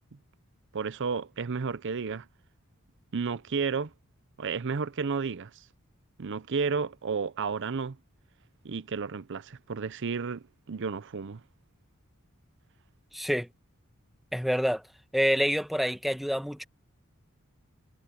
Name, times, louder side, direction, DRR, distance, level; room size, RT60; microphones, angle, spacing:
voice 1, 0.7-2.3 3.1-3.9 4.4-5.7 6.2-8.0 8.6-11.4, right 5 dB, 60° right, 0.6 m, -32 dB
voice 2, 13.1-13.5 14.3-14.8 15.1-16.6, equal, ahead, 1.1 m, -27 dB
head